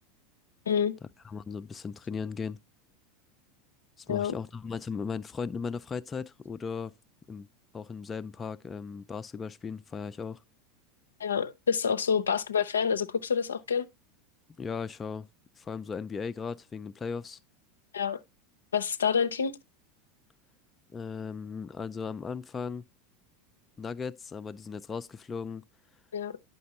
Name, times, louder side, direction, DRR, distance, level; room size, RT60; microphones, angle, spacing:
voice 1, 0.7-1.0 4.1-4.4 11.2-13.9 17.9-18.2 18.7-19.6 26.1-26.4, left 7 dB, 85° left, 0.5 m, -27 dB
voice 2, 1.2-2.6 4.0-6.9 7.3-7.5 7.7-10.4 14.6-15.3 15.6-17.4 20.9-22.9 23.8-25.6, left 5 dB, 25° left, 0.4 m, -37 dB
9.3 x 6.0 x 2.8 m
hypercardioid pair, 85°, 0 cm